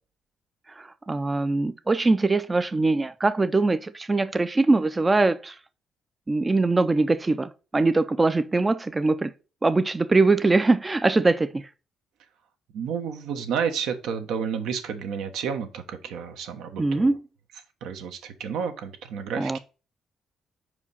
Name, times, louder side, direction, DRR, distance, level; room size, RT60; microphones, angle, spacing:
voice 1, 0.8-5.6 6.3-9.3 9.6-11.7 16.8-17.2 19.4-19.6, right 3 dB, 20° right, 0.4 m, -22 dB
voice 2, 12.7-17.1 17.8-19.6, right 7 dB, 85° right, 1.2 m, -31 dB
4.9 x 4.9 x 5.5 m
cardioid pair, 90°, 0 cm